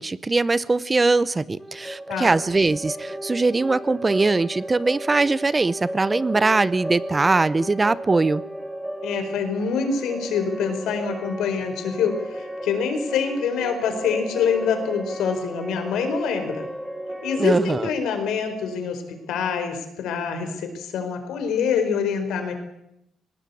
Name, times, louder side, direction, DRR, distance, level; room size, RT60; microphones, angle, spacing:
voice 1, 0.0-8.4 17.4-17.9, right 3 dB, 25° right, 18 dB, 0.7 m, -21 dB
sound 1, 1.6-19.4, equal, 5° right, 2.3 m, -34 dB
voice 2, 9.0-16.7 17.2-19.0 19.3-22.5, left 6 dB, 85° left, 7 dB, 4.5 m, -25 dB
19.0 x 18.5 x 8.5 m, 0.83 s
cardioid pair, 90°, 0 cm